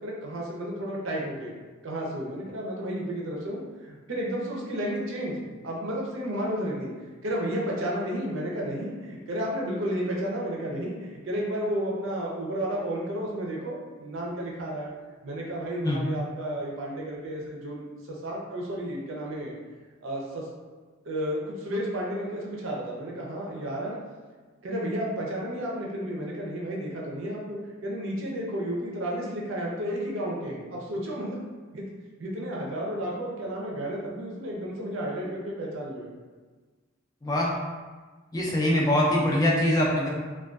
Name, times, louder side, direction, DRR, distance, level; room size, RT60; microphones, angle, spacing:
voice 1, 0.0-1.5 1.8-5.4 5.6-6.9 7.2-14.9 15.2-19.5 20.0-20.4 21.1-24.0 24.6-31.4 31.7-31.8 32.2-36.1, equal, 75° right, -3 dB, 0.6 m, -32 dB
voice 2, 38.3-40.1, left 1 dB, 20° left, -4 dB, 0.4 m, -23 dB
2.4 x 2.3 x 2.3 m, 1.4 s
head